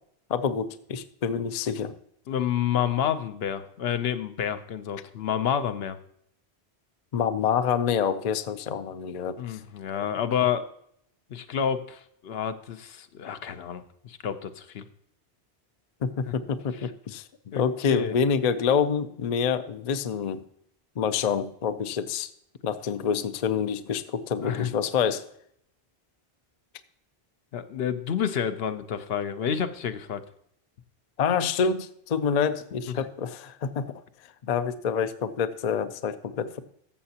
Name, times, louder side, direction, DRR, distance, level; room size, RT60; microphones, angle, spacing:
voice 1, 0.3-1.9 7.1-9.6 16.0-20.4 21.0-22.3 22.6-25.2 31.2-34.0 34.4-36.7, left 7 dB, 50° left, 12 dB, 0.5 m, -27 dB
voice 2, 2.3-6.0 9.4-10.7 11.3-14.8 16.3-16.4 16.7-16.9 17.5-18.2 24.4-24.7 27.5-30.2 32.9-33.1, left 8 dB, 75° left, 10 dB, 0.9 m, -29 dB
14.0 x 6.7 x 2.8 m, 0.70 s
omnidirectional pair, 1.0 m